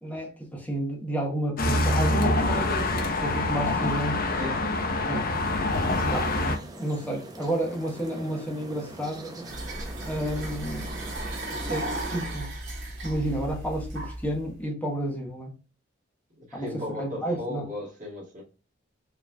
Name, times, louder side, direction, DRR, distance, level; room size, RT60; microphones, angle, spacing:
voice 1, 0.0-4.2 5.1-5.3 6.1-9.5 10.0-10.9 11.7-12.5 13.0-15.5 16.5-17.7, right 1 dB, 10° left, 1.1 m, -31 dB
sound 1, 1.6-6.6, left 2 dB, 50° left, 0.7 m, -25 dB
sound 2, 5.7-12.3, right 1 dB, 20° right, 0.7 m, -42 dB
sound 3, 9.4-14.5, right 1 dB, 70° right, 1.8 m, -35 dB
voice 2, 16.5-18.4, left 1 dB, 40° right, 2.0 m, -35 dB
4.8 x 3.1 x 2.2 m
head